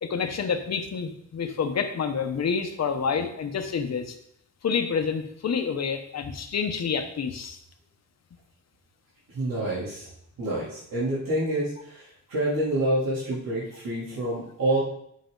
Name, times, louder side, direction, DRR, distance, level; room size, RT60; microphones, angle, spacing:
voice 1, 0.0-4.1 4.6-7.6, left 6 dB, 50° left, 7 dB, 1.0 m, -28 dB
voice 2, 9.3-10.1 10.4-14.8, right 1 dB, 90° right, -8 dB, 3.2 m, -27 dB
10.5 x 6.5 x 3.9 m, 0.72 s
wide cardioid pair, 170°, 33 cm